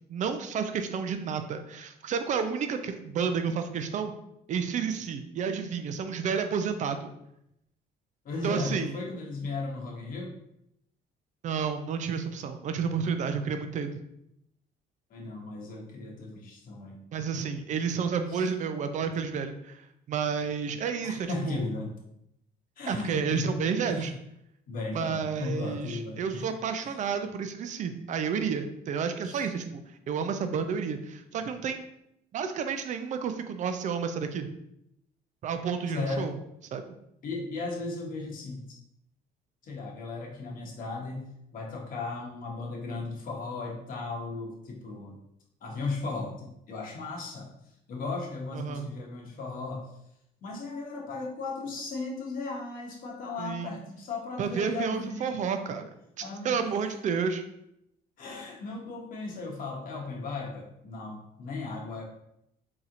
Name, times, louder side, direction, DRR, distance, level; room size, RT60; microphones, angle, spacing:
voice 1, 0.1-4.1 4.5-7.1 8.4-8.9 11.4-14.0 17.1-19.8 20.1-21.6 22.9-24.1 24.9-29.8 30.1-31.8 32.3-34.5 35.4-36.3 36.7-37.0 48.5-48.9 53.4-53.8 54.4-55.8 56.2-57.4, right 6 dB, 45° right, 8 dB, 0.4 m, -31 dB
voice 2, 8.2-10.3 15.1-17.0 18.3-18.5 21.0-21.9 22.8-23.5 23.9-24.2 24.7-26.5 26.8-26.9 29.2-29.5 35.8-36.3 37.2-38.7 39.6-41.3 41.5-45.2 45.6-47.5 47.9-49.9 50.4-55.7 56.2-56.6 58.2-62.0, left 3 dB, 55° left, -1 dB, 1.0 m, -36 dB
4.1 x 2.9 x 2.5 m, 0.79 s
cardioid pair, 110°, 17 cm